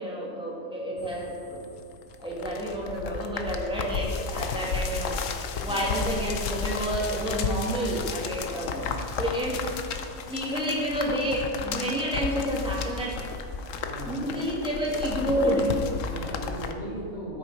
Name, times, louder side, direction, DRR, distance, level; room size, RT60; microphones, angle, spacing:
voice 1, 0.0-1.6 2.2-8.8 9.2-9.6 10.3-13.3 14.1-15.9, equal, 5° right, -4 dB, 1.9 m, -29 dB
sound 1, 1.0-16.7, left 5 dB, 70° left, 1.1 m, -33 dB
voice 2, 8.7-9.0 13.8-14.4 16.0-17.4, equal, 45° left, -7 dB, 3.3 m, -38 dB
12.5 x 6.7 x 4.7 m, 2.5 s
omnidirectional pair, 1.4 m